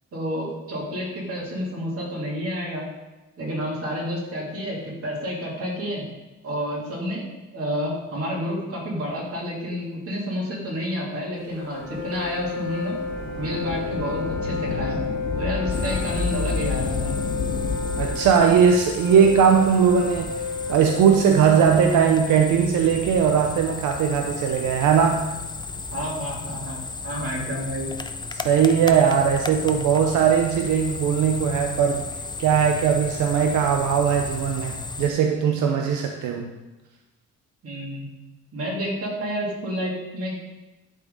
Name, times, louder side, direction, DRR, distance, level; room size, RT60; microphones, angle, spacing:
voice 1, 0.1-2.9 3.4-6.0 6.4-7.2 7.5-13.0 13.3-15.0 15.4-17.1 25.9-27.9 37.6-38.1 38.5-40.4, equal, 50° right, -4 dB, 2.7 m, -30 dB
Wind instrument woodwind instrument, 11.5-21.4, left 4 dB, 40° left, 1.3 m, -32 dB
Thunder / Rain, 11.8-20.8 21.5-21.6 22.5-23.8 25.3-26.1, left 4 dB, 55° left, 1.6 m, -31 dB
sound 1, 15.7-35.1, left 4 dB, 15° left, 0.4 m, -35 dB
voice 2, 18.0-20.3 20.7-25.3 28.3-32.0 32.4-36.5, right 7 dB, 85° right, 3 dB, 0.7 m, -19 dB
11.0 x 3.8 x 3.9 m, 1.1 s
cardioid pair, 90°, 30 cm